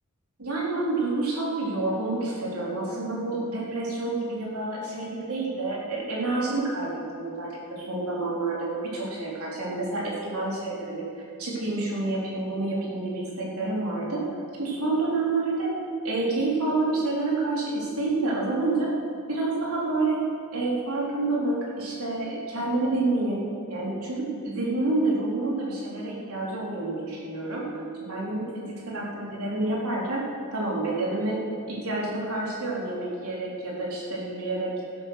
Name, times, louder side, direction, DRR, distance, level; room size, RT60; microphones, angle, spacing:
voice 1, 0.4-11.0 11.4-14.2 14.6-15.7 16.0-18.9 19.3-20.3 20.5-30.2 30.5-31.4 31.7-34.7, right 2 dB, 90° right, -4 dB, 3.6 m, -28 dB
16.5 x 7.9 x 6.4 m, 2.4 s
head